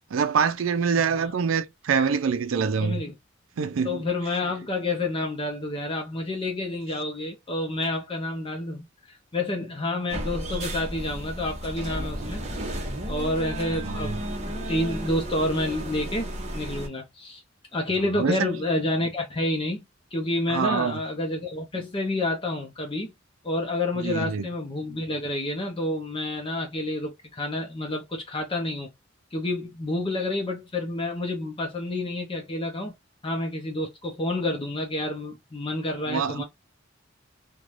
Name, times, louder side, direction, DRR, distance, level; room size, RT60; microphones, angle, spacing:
voice 1, 0.1-3.0 3.6-4.0 13.8-14.0 18.1-18.5 20.5-21.0 24.0-24.5 36.1-36.4, right 6 dB, 85° right, 0.4 m, -25 dB
voice 2, 0.9-1.3 2.8-3.1 3.8-12.7 13.1-14.1 14.5-17.4 17.7-19.8 20.1-23.1 23.4-28.9 29.3-32.9 33.2-36.4, left 2 dB, 25° left, 0.6 m, -29 dB
sound 1, 10.1-16.9, right 1 dB, 35° right, 0.8 m, -33 dB
3.2 x 2.2 x 2.4 m
head